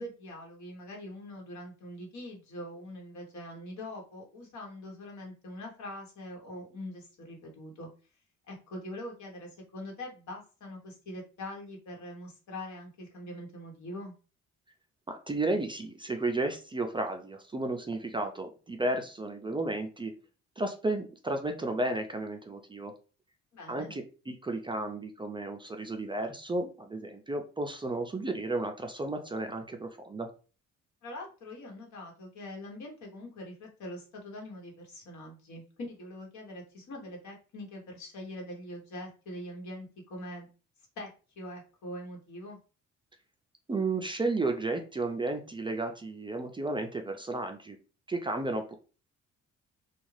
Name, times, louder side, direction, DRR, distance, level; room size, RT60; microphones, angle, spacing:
voice 1, 0.0-7.9 8.5-14.1 23.5-23.9 31.0-40.5 41.0-41.1 41.4-42.6, left 1 dB, 70° left, 0 dB, 1.2 m, -43 dB
voice 2, 15.1-20.1 20.6-22.9 23.7-30.3 43.7-47.8 48.1-48.7, right 2 dB, 15° right, 4 dB, 0.4 m, -33 dB
2.4 x 2.3 x 3.1 m, 0.35 s
cardioid pair, 90°, 30 cm